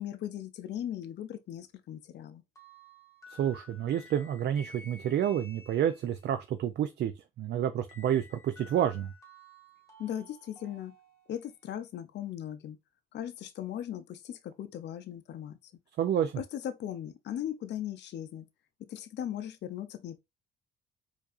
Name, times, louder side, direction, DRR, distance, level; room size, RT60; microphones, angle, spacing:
voice 1, 0.0-2.4 10.0-11.0 11.3-12.8 13.1-15.6 16.4-18.5 18.8-20.2, left 10 dB, 60° left, 0.5 m, -38 dB
sound 1, 2.6-6.3 7.9-11.7, left 2 dB, 15° left, 1.6 m, -54 dB
voice 2, 3.3-7.1 7.4-9.1 16.0-16.4, right 10 dB, 60° right, 0.4 m, -29 dB
4.5 x 2.6 x 2.4 m
cardioid pair, 90°, 20 cm